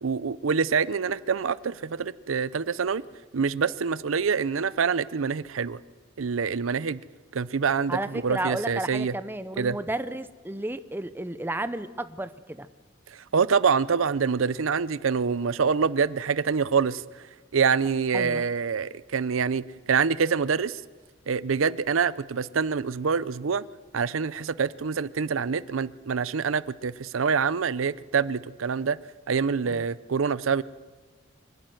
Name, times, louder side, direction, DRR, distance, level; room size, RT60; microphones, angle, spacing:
voice 1, 0.0-3.0 3.3-5.8 6.2-7.0 7.3-9.1 9.6-9.8 13.3-17.0 17.5-20.8 21.3-23.6 23.9-29.0 29.3-30.6, right 6 dB, 85° right, 18 dB, 0.6 m, -26 dB
voice 2, 7.9-12.7 18.1-18.5 29.7-29.8, right 1 dB, 10° right, 12 dB, 0.7 m, -32 dB
25.0 x 12.0 x 9.3 m, 1.4 s
head